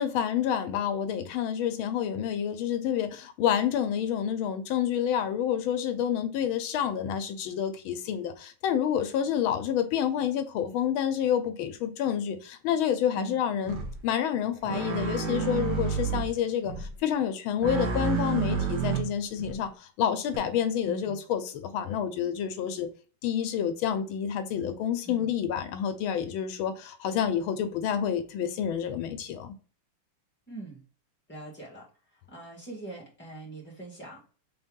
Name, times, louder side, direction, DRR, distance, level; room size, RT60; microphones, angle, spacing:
voice 1, 0.0-22.9 23.2-29.5, left 9 dB, 85° left, 1.5 m, -28 dB
sound 1, 13.7-14.0 14.7-16.3 16.6-16.9 17.6-19.5 20.3-20.4, right 7 dB, 60° right, 1.5 m, -30 dB
voice 2, 20.8-21.2 25.0-25.3 30.5-30.8 31.3-31.9 32.3-34.3, right 3 dB, 5° left, 1.8 m, -42 dB
4.1 x 3.5 x 3.7 m
omnidirectional pair, 2.2 m